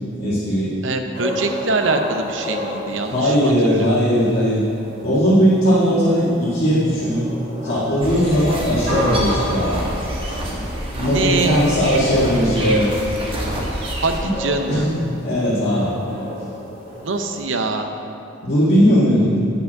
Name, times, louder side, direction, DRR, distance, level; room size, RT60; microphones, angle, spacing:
voice 1, 0.2-0.7 3.1-4.6 5.0-7.3 7.6-9.8 10.4-10.5 10.9-13.0 14.7-14.9 15.2-15.9 18.4-19.4, equal, 50° left, -10 dB, 1.8 m, -18 dB
voice 2, 0.8-3.9 11.0-11.6 14.0-14.9 17.0-17.9, right 3 dB, 65° right, 6 dB, 0.8 m, -23 dB
sound 1, 1.1-17.4, left 1 dB, 45° right, 2.1 m, -31 dB
sound 2, 8.0-14.2, right 1 dB, 25° right, 1.3 m, -27 dB
8.1 x 6.0 x 7.2 m, 2.6 s
head